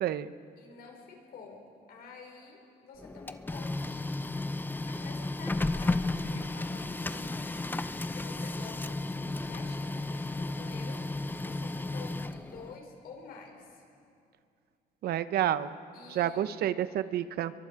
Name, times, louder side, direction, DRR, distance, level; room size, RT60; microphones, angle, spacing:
voice 1, 0.0-0.3 15.0-15.7 16.1-17.5, right 11 dB, 65° right, 13 dB, 0.8 m, -29 dB
voice 2, 0.6-4.0 4.9-6.0 6.3-7.8 8.1-11.0 11.4-13.8 15.9-16.5, left 4 dB, 65° left, 1 dB, 5.3 m, -49 dB
Printer, 3.0-12.8, left 2 dB, 10° left, 0.7 m, -34 dB
29.0 x 23.0 x 4.9 m, 2.5 s
cardioid pair, 110°, 17 cm